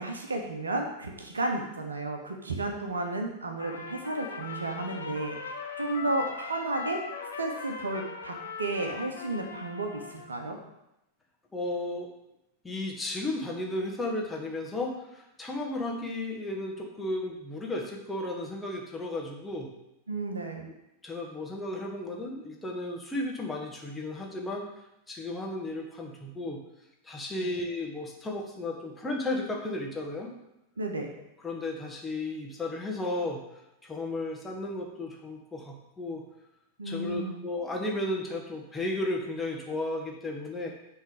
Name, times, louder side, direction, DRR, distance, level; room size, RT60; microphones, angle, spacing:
voice 1, 0.0-7.0 7.4-10.6 20.1-20.6 27.4-27.5 30.8-31.1 36.8-37.4, right 2 dB, 75° right, 3 dB, 1.0 m, -33 dB
Trumpet, 3.6-10.3, left 5 dB, 70° left, 0.9 m, -39 dB
voice 2, 11.5-12.1 12.6-19.7 21.0-24.6 25.1-26.6 27.0-30.3 31.4-33.4 33.8-36.2 36.8-40.7, left 2 dB, 10° left, 0 dB, 1.5 m, -34 dB
9.3 x 3.7 x 5.1 m, 0.89 s
figure-of-eight pair, 90°, 0 cm